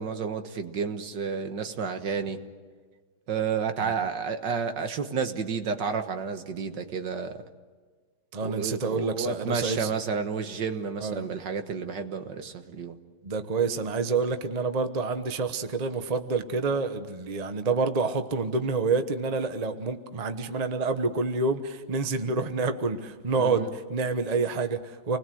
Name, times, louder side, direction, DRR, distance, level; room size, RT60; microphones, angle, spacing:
voice 1, 0.0-2.4 3.3-7.4 8.4-13.0 23.4-23.7, right 6 dB, 65° right, 8 dB, 1.9 m, -31 dB
voice 2, 8.3-9.9 11.0-11.3 13.2-25.2, right 4 dB, 25° right, 8 dB, 1.0 m, -28 dB
28.5 x 21.0 x 7.8 m, 1.5 s
omnidirectional pair, 2.2 m